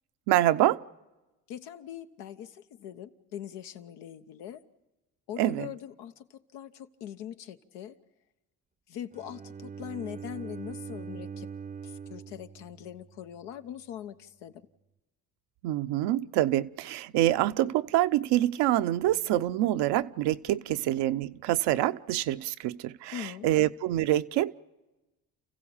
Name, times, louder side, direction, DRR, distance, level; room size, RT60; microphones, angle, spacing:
voice 1, 0.3-0.8 5.4-5.7 15.6-24.5, right 14 dB, 75° right, 0.8 m, -26 dB
voice 2, 1.5-4.6 5.3-8.0 8.9-11.5 11.8-14.7 23.1-23.5, left 10 dB, 85° left, 1.1 m, -42 dB
Bowed string instrument, 9.1-13.2, right 6 dB, 20° right, 0.6 m, -42 dB
29.5 x 15.5 x 7.1 m
supercardioid pair, 70°, 41 cm